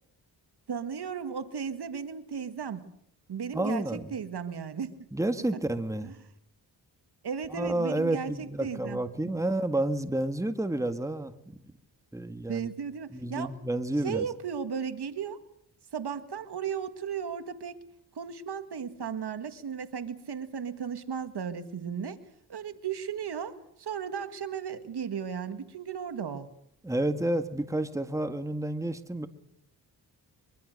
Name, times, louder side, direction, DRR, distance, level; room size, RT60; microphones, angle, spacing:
voice 1, 0.7-2.9 3.3-4.9 6.0-6.1 7.2-9.3 12.5-13.5 14.0-15.4 15.9-17.8 18.2-22.2 22.5-26.6, right 7 dB, 65° right, 10 dB, 1.8 m, -35 dB
voice 2, 3.5-4.1 5.1-6.1 7.5-11.6 12.1-12.7 13.1-14.3 26.8-29.3, right 1 dB, 5° right, 8 dB, 1.7 m, -30 dB
23.5 x 23.5 x 6.6 m, 0.72 s
cardioid pair, 75°, 42 cm